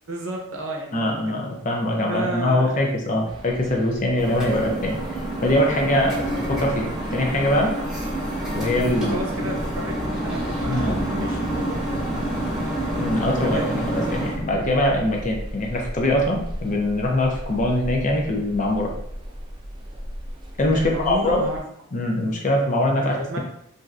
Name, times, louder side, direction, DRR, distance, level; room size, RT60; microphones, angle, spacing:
voice 1, 0.1-1.4 2.1-2.9 3.3-3.4 4.4-4.6 8.9-11.9 13.4-13.7 14.2-14.3 20.7-21.6 22.9-23.4, right 1 dB, 80° right, 0 dB, 0.7 m, -32 dB
voice 2, 0.9-7.7 8.5-9.2 10.7-11.2 12.9-18.9 20.6-21.5 21.9-23.4, left 1 dB, 40° left, 0 dB, 0.5 m, -23 dB
sound 1, 3.3-21.6, equal, 20° right, 0.4 m, -36 dB
sound 2, 4.2-14.4, right 1 dB, 5° right, 0.8 m, -28 dB
3.0 x 2.6 x 2.4 m, 0.74 s
head